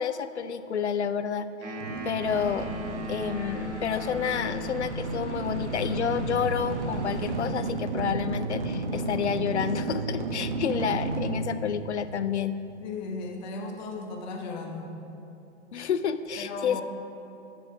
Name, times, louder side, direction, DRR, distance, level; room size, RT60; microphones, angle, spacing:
voice 1, 0.0-1.8 2.0-2.7 3.1-12.6 15.7-16.8, left 7 dB, 70° left, 12 dB, 0.6 m, -29 dB
sound 1, 1.6-5.0, equal, 25° right, 1.3 m, -38 dB
sound 2, 1.8-12.8, right 3 dB, 40° right, 0.7 m, -33 dB
sound 3, 2.2-7.4, equal, 70° right, 1.8 m, -42 dB
voice 2, 12.8-14.9 16.4-16.8, left 3 dB, 40° left, 3 dB, 1.2 m, -36 dB
12.5 x 6.3 x 4.5 m, 2.8 s
figure-of-eight pair, 110°, 36 cm